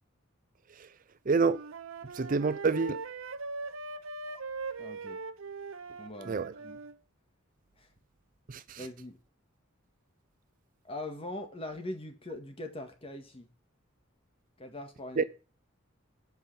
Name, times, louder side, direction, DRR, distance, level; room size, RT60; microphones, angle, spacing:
voice 1, 1.3-1.6 2.1-3.0 6.3-6.5 8.5-8.8 15.2-15.3, right 4 dB, 40° right, 0.5 m, -27 dB
Wind instrument woodwind instrument, 1.4-7.0, right 3 dB, 70° right, 0.8 m, -41 dB
voice 2, 4.8-5.2 6.0-6.8 7.8-7.9 8.8-9.2 10.8-13.5 14.6-15.2, left 1 dB, 25° left, 1.8 m, -41 dB
8.0 x 5.5 x 6.9 m
head